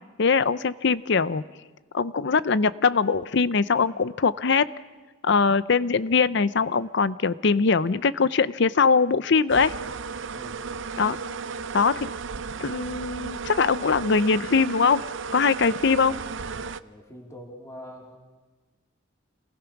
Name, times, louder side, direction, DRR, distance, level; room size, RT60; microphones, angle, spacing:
voice 1, 0.2-1.4 1.9-4.6 5.2-9.7 11.0-11.2 11.7-12.1 12.6-15.0 15.3-16.1, left 5 dB, 60° left, 16 dB, 0.6 m, -22 dB
sound 1, 9.5-16.8, right 5 dB, 65° right, 0.6 m, -34 dB
voice 2, 10.3-10.6 16.8-18.2, equal, 15° left, -2 dB, 3.5 m, -44 dB
27.5 x 19.5 x 6.0 m, 1.3 s
head